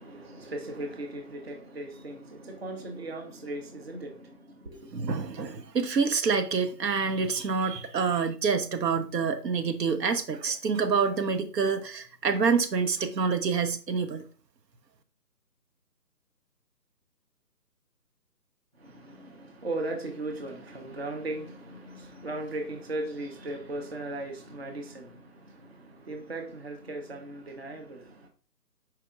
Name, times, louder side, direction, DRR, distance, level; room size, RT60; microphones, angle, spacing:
voice 1, 0.0-4.9 18.8-28.3, right 2 dB, 40° right, 0.6 m, -38 dB
voice 2, 4.9-14.2, right 5 dB, 80° right, 0.8 m, -27 dB
4.7 x 4.4 x 2.4 m
hypercardioid pair, 165°, 49 cm